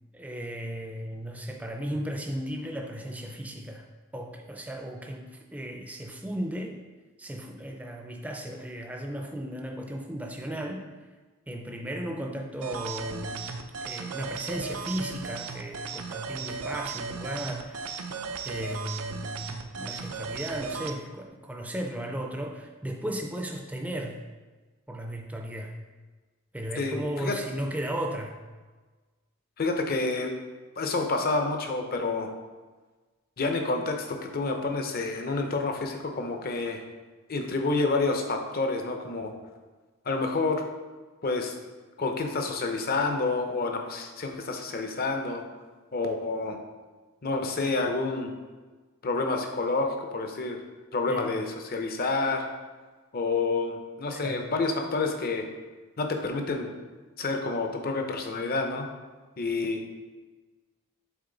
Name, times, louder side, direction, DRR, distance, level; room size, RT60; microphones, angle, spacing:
voice 1, 0.1-3.9 4.1-6.8 7.2-10.9 11.5-13.5 13.8-18.0 18.4-24.2 24.9-25.8 26.5-28.4 51.1-51.3 54.1-54.4, right 1 dB, 5° right, 2 dB, 0.5 m, -35 dB
sound 1, 12.6-20.9, right 5 dB, 85° right, 0.5 m, -36 dB
voice 2, 26.8-27.4 29.6-30.3 30.8-32.3 33.4-36.8 37.3-39.3 40.0-40.6 41.2-41.6 42.0-45.5 45.9-46.6 47.2-48.3 49.0-50.6 50.9-52.4 53.1-55.5 56.0-56.7 57.2-58.9 59.4-59.8, left 3 dB, 45° left, 4 dB, 0.7 m, -28 dB
7.0 x 4.1 x 3.9 m, 1.3 s
head